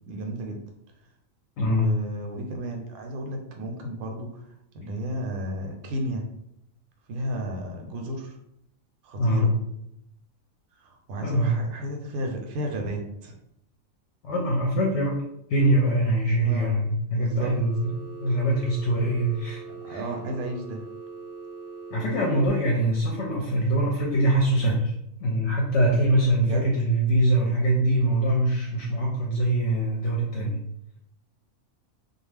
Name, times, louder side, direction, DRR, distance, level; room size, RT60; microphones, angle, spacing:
voice 1, 0.0-0.6 1.6-4.5 4.7-6.2 7.1-8.4 9.0-9.5 10.8-13.3 16.4-17.5 19.7-20.8 26.4-26.7, right 1 dB, 90° right, 2 dB, 1.0 m, -33 dB
voice 2, 1.6-1.9 9.2-9.5 11.2-11.5 14.2-15.2 15.5-20.1 21.9-24.9 25.2-30.6, right 1 dB, 65° left, -1 dB, 0.8 m, -23 dB
Telephone, 17.5-22.5, right 4 dB, 55° right, 0.6 m, -41 dB
2.4 x 2.3 x 3.2 m, 0.78 s
omnidirectional pair, 1.5 m